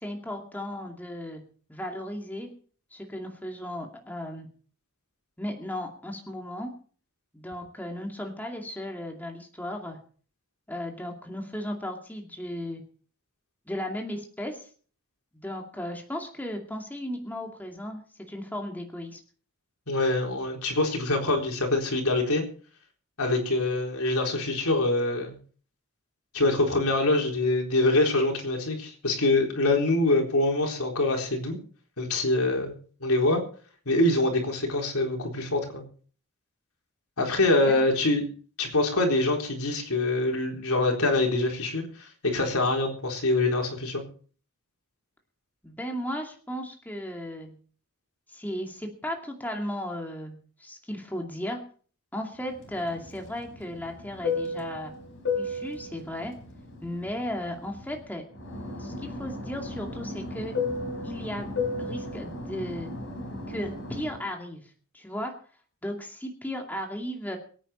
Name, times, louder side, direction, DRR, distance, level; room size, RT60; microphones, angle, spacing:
voice 1, 0.0-1.4 1.7-2.5 2.9-4.5 5.4-6.7 7.3-10.0 10.7-12.8 13.7-14.6 15.3-19.2 37.6-37.8 45.6-47.6 48.3-51.6 52.1-54.9 55.4-56.3 56.8-58.2 58.8-60.5 61.0-61.5 61.8-62.9 63.5-64.6 64.9-65.3 65.8-67.4, left 1 dB, 10° left, 2 dB, 2.4 m, -35 dB
voice 2, 19.9-22.4 23.2-25.4 26.3-31.6 32.0-32.7 33.0-33.4 33.9-35.8 37.2-38.2 38.6-44.0, left 2 dB, 85° left, 2 dB, 4.0 m, -25 dB
Fixed-wing aircraft airplane, 52.6-58.0 58.3-64.2, left 3 dB, 60° left, 4.3 m, -34 dB
24.0 x 9.2 x 4.4 m, 0.43 s
head